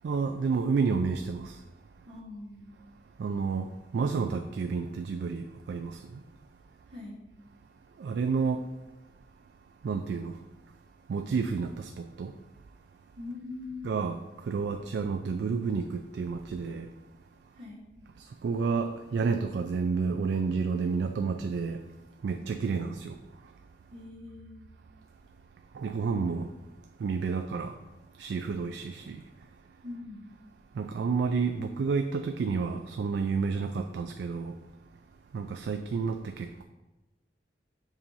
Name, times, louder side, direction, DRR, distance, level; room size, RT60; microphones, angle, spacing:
voice 1, 0.0-1.6 3.2-6.2 8.0-8.6 9.8-10.4 11.1-12.3 13.8-16.9 18.2-21.8 22.2-23.1 25.7-26.5 27.0-27.7 28.2-29.2 30.8-34.6 35.3-36.6, right 5 dB, 70° right, 0.3 m, -30 dB
voice 2, 2.1-2.7 6.9-7.2 13.1-13.9 17.5-17.8 23.9-24.7 29.8-30.3, left 3 dB, 45° right, 1.1 m, -42 dB
7.2 x 2.6 x 5.5 m
head